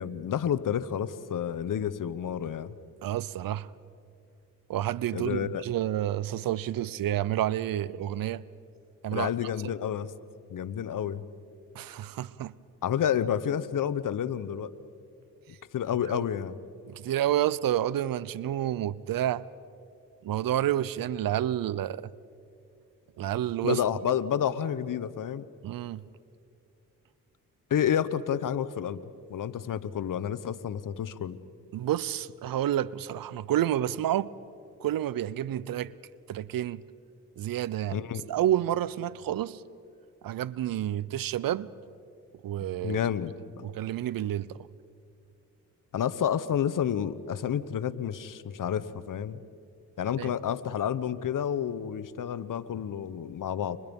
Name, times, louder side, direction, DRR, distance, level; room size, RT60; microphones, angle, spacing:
voice 1, 0.0-2.7 5.1-5.6 9.1-10.1 10.5-11.3 12.8-14.7 15.7-16.6 23.6-25.4 27.7-29.0 29.3-31.4 37.9-38.3 42.8-43.7 45.9-49.4 50.0-53.8, left 9 dB, 65° left, 1.1 m, -30 dB
voice 2, 3.0-3.7 4.7-8.4 9.0-9.3 9.6-9.7 11.7-12.5 16.1-16.3 16.9-19.5 20.2-22.1 23.2-23.8 25.6-26.0 31.7-34.3 34.8-35.9 36.3-36.8 37.4-39.6 40.2-41.7 42.4-43.0 43.6-44.7 50.2-50.3, right 12 dB, 75° right, 0.7 m, -29 dB
30.0 x 25.5 x 5.4 m
cardioid pair, 65°, 35 cm